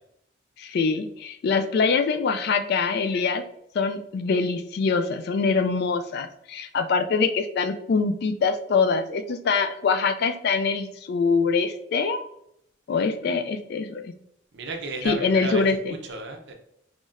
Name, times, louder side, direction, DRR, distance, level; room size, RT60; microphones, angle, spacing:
voice 1, 0.6-3.4 3.7-12.2 12.9-14.1 15.0-15.9, left 4 dB, 55° left, 10 dB, 0.3 m, -24 dB
voice 2, 14.5-15.6 15.9-16.5, right 3 dB, 60° right, 3 dB, 0.6 m, -33 dB
3.9 x 3.0 x 2.4 m, 0.73 s
head